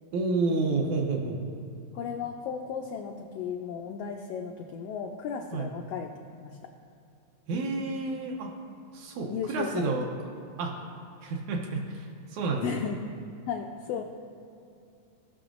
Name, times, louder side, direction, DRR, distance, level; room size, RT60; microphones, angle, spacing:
voice 1, 0.1-1.4 5.5-5.7 7.5-8.5 8.9-10.1 10.6-10.8 11.2-12.1 12.3-12.7, right 3 dB, 80° right, 0 dB, 2.0 m, -29 dB
voice 2, 1.9-6.1 6.4-6.6 9.3-10.0 12.6-13.1 13.5-14.0, left 7 dB, 90° left, 3 dB, 1.3 m, -35 dB
17.5 x 5.9 x 2.5 m, 2.5 s
omnidirectional pair, 3.4 m